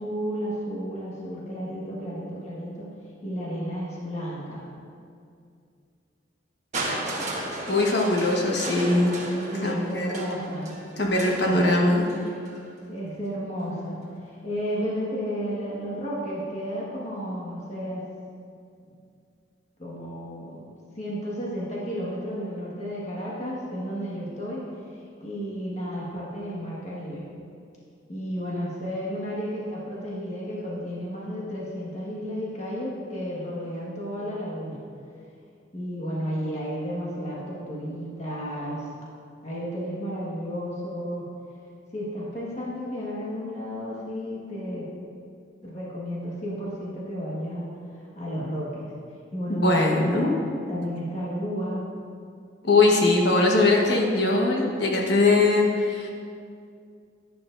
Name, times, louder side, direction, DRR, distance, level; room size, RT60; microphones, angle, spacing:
voice 1, 0.0-2.9 3.2-4.6 9.2-10.7 11.4-11.7 12.9-14.0 14.2-18.0 18.9-19.0 19.8-20.6 21.0-24.6 24.9-27.2 28.1-34.8 35.7-38.9 39.4-41.3 41.9-44.9 45.6-47.7 48.0-48.9 49.3-50.4 50.7-51.8, equal, 35° left, -6 dB, 1.5 m, -32 dB
Crushing, 6.7-12.6 13.6-13.7, right 1 dB, 40° right, 1.3 m, -34 dB
voice 2, 7.7-9.1 9.6-10.2 11.0-12.0 49.5-50.3 52.6-56.1, left 2 dB, 60° left, -1 dB, 1.3 m, -21 dB
11.0 x 9.9 x 2.6 m, 2.3 s
head